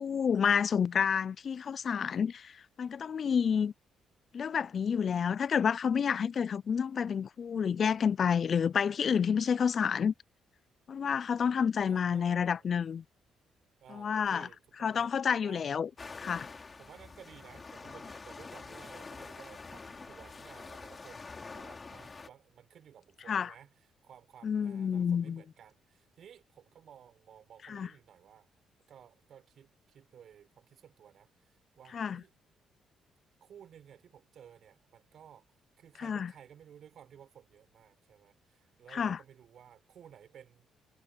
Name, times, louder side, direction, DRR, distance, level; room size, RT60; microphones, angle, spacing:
voice 1, 0.0-2.5 2.8-3.7 4.3-10.1 10.9-13.0 14.0-14.5 14.8-15.9 16.2-16.5 23.3-23.5 24.4-25.4 27.7-27.9 31.9-32.2 36.0-36.3 38.9-39.2, left 7 dB, 50° left, 0.4 m, -29 dB
voice 2, 11.8-12.7 13.8-15.8 16.8-21.3 21.5-28.5 28.9-31.3 31.8-32.4 33.4-35.5 35.8-40.7, right 9 dB, 65° right, 5.4 m, -55 dB
sound 1, 16.0-22.3, left 4 dB, 30° left, 3.3 m, -46 dB
cardioid pair, 90°, 0 cm